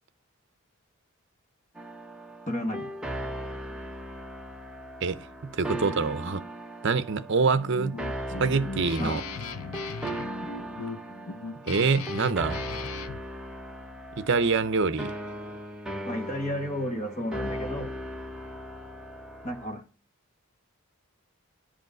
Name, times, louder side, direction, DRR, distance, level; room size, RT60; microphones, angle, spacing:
sound 1, 1.7-19.7, equal, 5° right, 0.9 m, -38 dB
voice 1, 2.5-2.9 9.0-9.2 16.0-18.0 19.4-19.8, left 1 dB, 30° left, 1.8 m, -32 dB
voice 2, 5.0-6.5 6.8-8.0 8.4-9.2 11.7-12.6 14.2-15.1, right 4 dB, 55° right, 0.7 m, -25 dB
Guitar, 7.4-13.2, left 4 dB, 75° left, 0.8 m, -38 dB
11.0 x 5.1 x 7.8 m
head